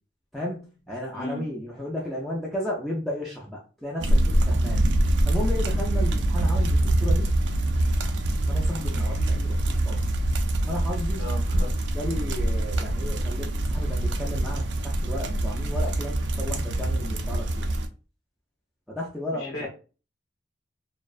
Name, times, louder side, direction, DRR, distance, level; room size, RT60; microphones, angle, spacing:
voice 1, 0.3-4.9 5.3-7.3 8.5-10.0 10.7-11.4 11.9-17.7 18.9-19.7, left 1 dB, ahead, -5 dB, 0.4 m, -34 dB
sound 1, 4.0-17.9, right 1 dB, 90° right, 0.4 m, -24 dB
voice 2, 11.2-11.7 19.4-19.7, left 1 dB, 65° left, 0 dB, 0.8 m, -35 dB
2.5 x 2.1 x 2.3 m, 0.35 s
head